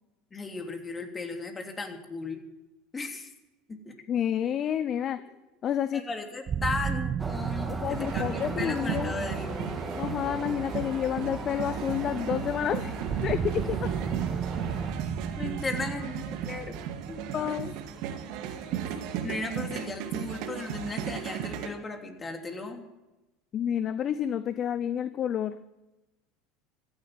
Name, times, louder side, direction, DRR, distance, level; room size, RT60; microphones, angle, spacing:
voice 1, 0.3-2.4 2.9-3.3 3.7-4.0 5.9-9.7 13.6-13.7 15.4-16.7 17.1-17.5 19.2-22.8, left 3 dB, 20° left, 4 dB, 3.0 m, -36 dB
voice 2, 4.1-5.2 5.6-6.0 7.7-9.1 10.0-12.9 13.2-13.9 17.3-17.7 23.5-25.5, left 9 dB, 45° left, 14 dB, 0.7 m, -29 dB
sound 1, 6.5-11.4 13.1-18.7, right 8 dB, 35° right, 0.7 m, -35 dB
sound 2, 7.2-14.9, right 2 dB, 15° right, 2.6 m, -38 dB
sound 3, 7.9-21.7, right 9 dB, 60° right, 2.0 m, -35 dB
15.0 x 10.5 x 9.2 m, 1.0 s
hypercardioid pair, 85°, 0 cm